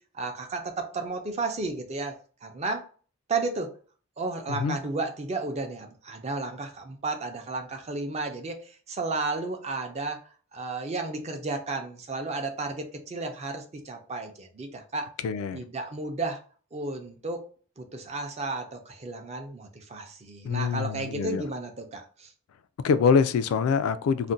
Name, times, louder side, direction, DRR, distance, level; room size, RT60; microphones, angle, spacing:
voice 1, 0.1-2.1 2.4-2.8 3.3-3.7 4.2-8.6 8.9-10.2 10.5-15.1 15.5-16.4 16.7-17.4 17.8-22.3, right 3 dB, 30° right, 0.4 m, -33 dB
voice 2, 15.2-15.6 20.4-21.4 22.8-24.3, left 6 dB, 85° left, 0.3 m, -25 dB
2.5 x 2.1 x 3.8 m
head